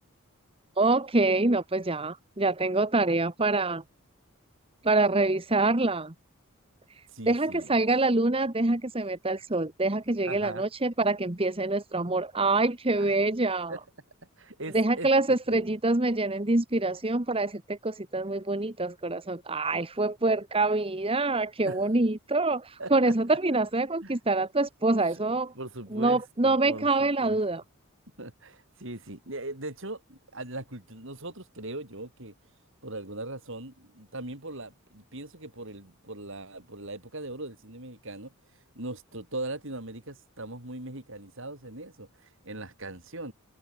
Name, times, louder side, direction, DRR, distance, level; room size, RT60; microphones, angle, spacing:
voice 1, 0.8-3.8 4.8-6.1 7.3-13.7 14.7-25.5 25.9-27.6, right 2 dB, 25° right, 1.3 m, -25 dB
voice 2, 7.1-7.8 10.2-10.6 12.9-13.1 13.7-13.8 14.4-15.1 15.5-15.7 21.6-21.8 22.8-23.1 24.0-24.1 25.0-27.4 28.2-32.3 32.8-38.3 38.8-43.3, right 2 dB, 60° right, 5.7 m, -40 dB
head